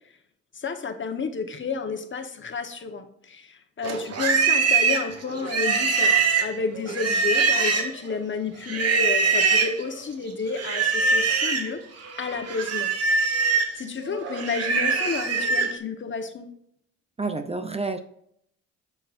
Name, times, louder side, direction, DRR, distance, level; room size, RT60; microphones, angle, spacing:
voice 1, 0.5-6.1 6.4-11.8 12.2-12.9 13.2-16.5, left 4 dB, 40° left, 6 dB, 1.2 m, -31 dB
Livestock farm animals working animals, 3.8-8.1 8.7-9.8 10.5-11.7 12.1-15.7, right 4 dB, 55° right, 1.4 m, -23 dB
voice 2, 17.2-18.0, right 3 dB, 20° right, 8 dB, 0.6 m, -29 dB
10.5 x 6.5 x 2.6 m, 0.71 s
cardioid pair, 90°, 30 cm